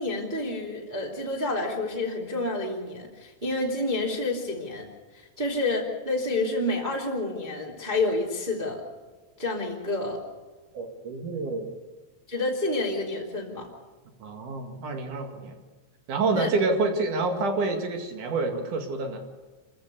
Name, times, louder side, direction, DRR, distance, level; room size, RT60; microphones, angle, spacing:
voice 1, 0.0-4.9 5.1-8.8 9.4-10.2 12.3-13.7 16.3-16.5, left 2 dB, 15° right, -2 dB, 2.0 m, -29 dB
voice 2, 10.7-11.7 14.2-15.6 16.1-19.2, right 3 dB, 55° right, 5 dB, 3.0 m, -28 dB
27.0 x 15.0 x 6.8 m, 1.3 s
omnidirectional pair, 5.1 m